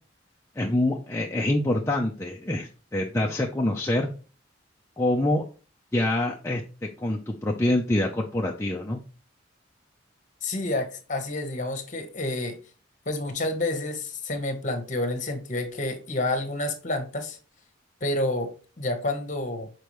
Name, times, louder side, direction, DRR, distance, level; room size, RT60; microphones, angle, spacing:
voice 1, 0.6-4.1 5.0-5.4 5.9-9.0, left 1 dB, 15° left, 0.5 m, -26 dB
voice 2, 10.4-12.6 13.1-17.4 18.0-19.7, left 2 dB, 35° left, 1.1 m, -29 dB
6.8 x 4.5 x 3.1 m
head